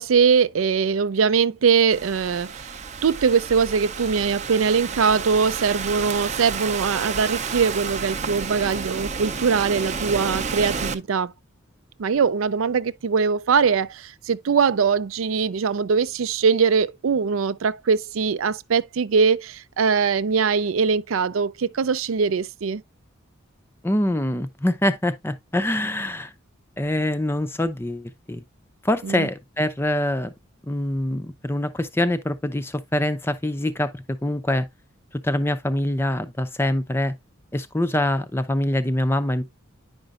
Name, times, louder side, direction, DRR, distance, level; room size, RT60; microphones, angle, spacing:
voice 1, 0.0-2.8 3.0-11.3 12.0-22.8 29.0-29.3, right 5 dB, 80° right, 0.4 m, -22 dB
Thunderstorm / Rain, 1.9-10.9, right 5 dB, 35° right, 0.6 m, -31 dB
voice 2, 23.8-26.3 26.8-28.4 28.8-30.3 30.6-34.7 35.2-37.1 37.5-39.4, left 1 dB, 10° left, 0.5 m, -24 dB
9.8 x 5.3 x 2.4 m
head